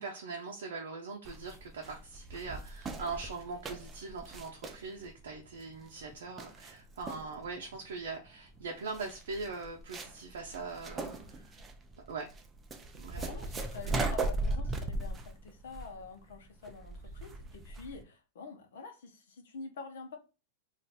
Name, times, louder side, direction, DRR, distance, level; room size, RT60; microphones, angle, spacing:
voice 1, 0.0-11.6 12.1-12.3 13.0-13.3, right 4 dB, 85° right, 0.5 m, -41 dB
sound 1, 1.2-18.0, right 2 dB, 20° right, 0.4 m, -39 dB
voice 2, 13.1-20.2, left 4 dB, 85° left, 0.8 m, -47 dB
2.5 x 2.1 x 4.0 m
supercardioid pair, 140°, 0 cm